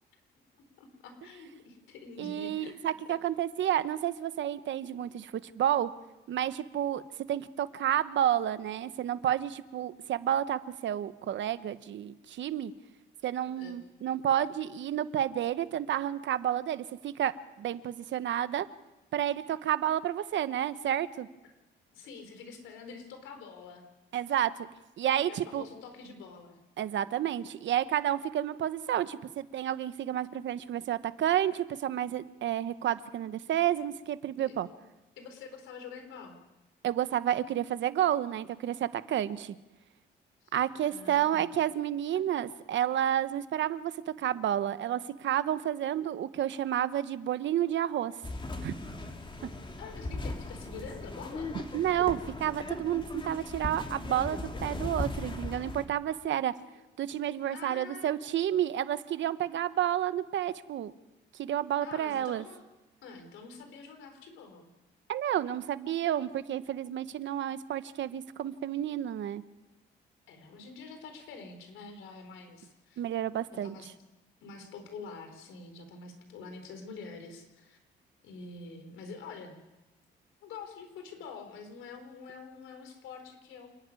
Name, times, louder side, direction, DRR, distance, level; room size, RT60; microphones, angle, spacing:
voice 1, 0.8-2.9 13.6-13.8 21.4-21.5 21.9-23.8 25.3-26.6 34.5-34.7 35.2-36.4 40.4-40.5 40.8-41.5 49.8-51.6 56.5-56.7 57.5-58.2 61.8-62.6 63.0-64.7 70.3-73.0 73.6-73.9 74.4-77.8 78.2-79.6 80.4-83.7, left 4 dB, 90° left, 6 dB, 4.1 m, -46 dB
voice 2, 2.2-5.9 6.3-7.0 7.3-12.7 13.2-18.7 19.1-21.3 24.1-24.7 25.0-25.6 26.8-34.7 36.8-39.5 40.5-43.9 44.2-48.1 48.6-48.7 51.7-56.5 57.0-60.9 61.4-62.4 65.1-69.4 73.0-73.8, right 11 dB, 70° right, 14 dB, 1.0 m, -30 dB
sound 1, 48.2-55.9, left 2 dB, 25° left, 2.8 m, -38 dB
28.5 x 10.5 x 9.7 m, 1.0 s
cardioid pair, 90°, 20 cm